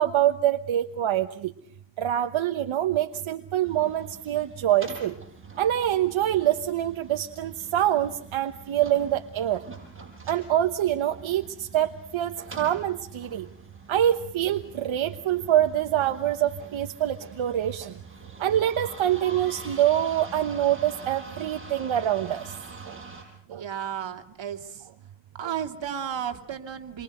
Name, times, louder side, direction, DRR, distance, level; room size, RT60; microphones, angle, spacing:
voice 1, 0.0-1.5 2.0-5.1 5.6-9.6 10.3-13.4 13.9-17.9 18.4-22.4 22.9-23.0 23.5-23.6, right 11 dB, 90° right, 7 dB, 1.2 m, -25 dB
sound 1, 3.6-23.2, right 3 dB, 25° right, 7.3 m, -45 dB
voice 2, 23.5-24.9 25.4-27.0, right 9 dB, 70° right, 6 dB, 2.7 m, -33 dB
28.5 x 24.0 x 7.9 m, 0.63 s
wide cardioid pair, 115°, 46 cm